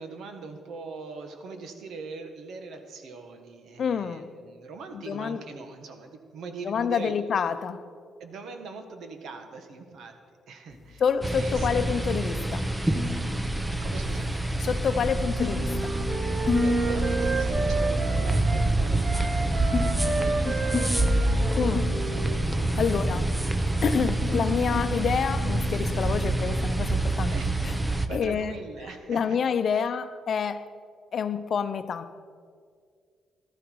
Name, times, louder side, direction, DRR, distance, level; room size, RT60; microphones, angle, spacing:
voice 1, 0.0-7.1 8.2-10.1 10.5-11.0 11.3-11.8 13.8-14.3 16.4-21.7 27.3-27.5 27.8-29.4 29.7-29.8, right 4 dB, 70° right, 1.6 m, -41 dB
voice 2, 3.8-4.3 4.9-5.4 6.7-7.8 11.0-12.7 14.6-16.0 21.5-21.9 22.7-23.3 23.8-27.4 27.6-27.7 28.1-28.5 29.1-30.7 31.1-32.1, left 7 dB, 55° left, 0.7 m, -28 dB
sound 1, 10.7-26.8, left 3 dB, 20° left, 1.6 m, -35 dB
sound 2, 11.2-28.1, right 2 dB, 10° right, 0.8 m, -27 dB
Wind instrument woodwind instrument, 15.2-18.7 19.0-22.8, right 3 dB, 50° right, 1.4 m, -32 dB
15.0 x 12.5 x 4.7 m
cardioid pair, 90°, 0 cm